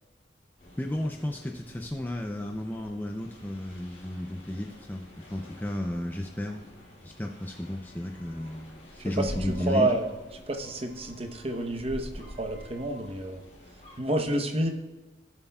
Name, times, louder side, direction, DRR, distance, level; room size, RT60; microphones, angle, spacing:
sound 1, 0.6-14.0, equal, 40° left, 2.8 m, -47 dB
voice 1, 0.8-6.6 7.0-9.9, left 1 dB, 10° left, 2 dB, 0.5 m, -33 dB
voice 2, 9.0-10.1 10.5-13.4 14.0-14.7, right 1 dB, 35° right, 4 dB, 0.9 m, -29 dB
16.5 x 7.2 x 2.3 m, 1.2 s
head